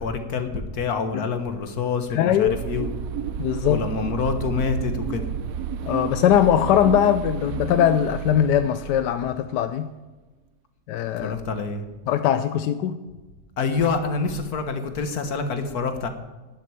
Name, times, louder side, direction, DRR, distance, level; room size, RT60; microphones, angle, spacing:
voice 1, 0.0-2.9 3.7-5.2 11.2-11.8 13.6-16.1, left 4 dB, 65° left, 1.9 m, -26 dB
voice 2, 2.1-2.6 3.4-3.9 5.8-9.9 10.9-11.4 12.1-13.0, left 10 dB, 90° left, 1.3 m, -21 dB
sound 1, 2.5-9.9, right 9 dB, 65° right, 1.0 m, -32 dB
12.0 x 7.7 x 9.9 m
omnidirectional pair, 1.8 m